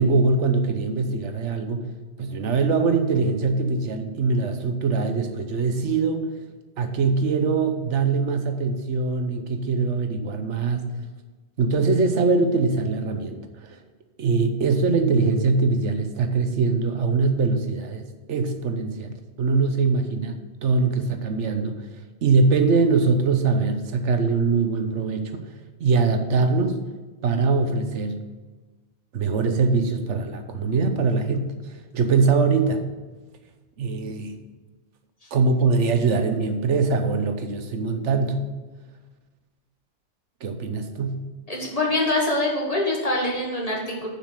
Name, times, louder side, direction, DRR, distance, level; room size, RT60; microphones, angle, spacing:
voice 1, 0.0-1.9 2.2-6.3 6.8-10.8 11.6-13.8 14.2-18.0 18.3-19.1 19.4-20.4 20.6-21.8 22.2-25.5 25.8-26.8 27.2-28.2 29.1-32.8 33.8-34.4 35.3-38.4 40.4-41.2, right 4 dB, 90° right, 7 dB, 1.2 m, -22 dB
voice 2, 41.5-44.1, left 2 dB, 30° left, -1 dB, 1.8 m, -24 dB
7.2 x 5.7 x 7.5 m, 1.3 s
omnidirectional pair, 1.2 m